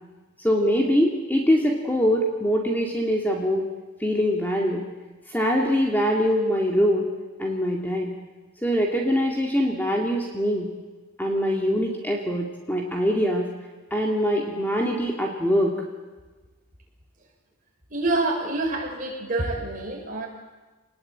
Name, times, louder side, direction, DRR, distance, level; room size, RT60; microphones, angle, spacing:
voice 1, 0.4-3.6 4.0-4.8 5.3-7.1 7.4-8.1 8.6-10.7 11.2-13.5 13.9-15.7, equal, 10° left, 0 dB, 2.4 m, -23 dB
voice 2, 17.9-20.3, right 2 dB, 35° right, -1 dB, 6.7 m, -27 dB
27.0 x 20.0 x 8.9 m, 1.3 s
head